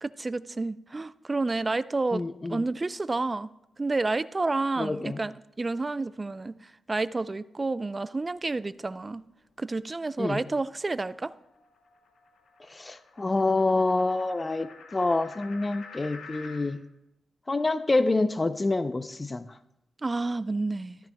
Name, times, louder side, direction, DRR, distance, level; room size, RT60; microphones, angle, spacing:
voice 1, 0.0-2.2 2.5-3.5 3.8-6.6 6.9-9.2 9.6-11.3 20.0-21.0, right 3 dB, 35° right, 0.4 m, -30 dB
voice 2, 2.1-2.6 4.8-5.2 10.2-10.4 12.7-16.8 17.5-19.5, left 2 dB, 35° left, 0.5 m, -27 dB
sound 1, 10.0-16.7, left 4 dB, 85° left, 1.4 m, -49 dB
13.5 x 13.5 x 2.2 m
supercardioid pair, 40°, 0 cm